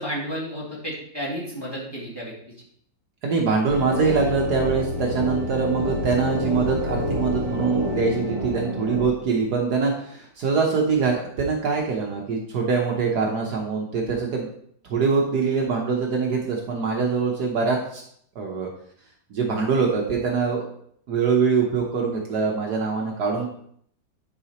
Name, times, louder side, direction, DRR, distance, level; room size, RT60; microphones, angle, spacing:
voice 1, 0.0-2.3, equal, 15° left, -6 dB, 2.1 m, -32 dB
voice 2, 3.2-14.5 14.9-18.0 18.3-18.7 19.3-20.6 21.1-23.5, right 5 dB, 60° right, 0 dB, 1.4 m, -23 dB
sound 1, 3.7-9.1, left 1 dB, 40° right, 2.3 m, -28 dB
10.0 x 4.9 x 2.9 m, 0.65 s
omnidirectional pair, 2.1 m